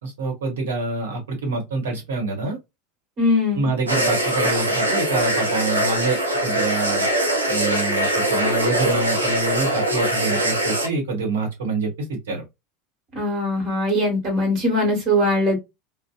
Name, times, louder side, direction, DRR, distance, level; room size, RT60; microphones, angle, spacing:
voice 1, 0.0-2.6 3.5-6.2 6.4-7.1 7.5-12.4, right 3 dB, 70° right, 1.0 m, -26 dB
voice 2, 3.2-3.7 13.1-15.6, left 1 dB, 40° right, 1.3 m, -21 dB
sound 1, 3.9-10.9, right 1 dB, 85° right, 0.6 m, -22 dB
2.6 x 2.1 x 2.2 m
figure-of-eight pair, 80°, 0 cm